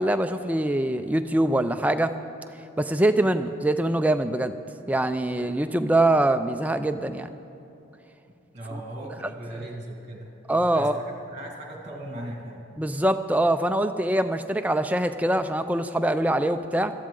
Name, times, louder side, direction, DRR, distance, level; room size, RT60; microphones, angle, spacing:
voice 1, 0.0-2.1 2.8-4.5 4.9-7.3 8.7-8.8 10.5-11.0 12.8-16.9, right 1 dB, 5° right, 8 dB, 0.4 m, -23 dB
voice 2, 8.5-12.6, right 1 dB, 35° right, 0 dB, 2.0 m, -38 dB
17.5 x 13.5 x 3.8 m, 2.9 s
head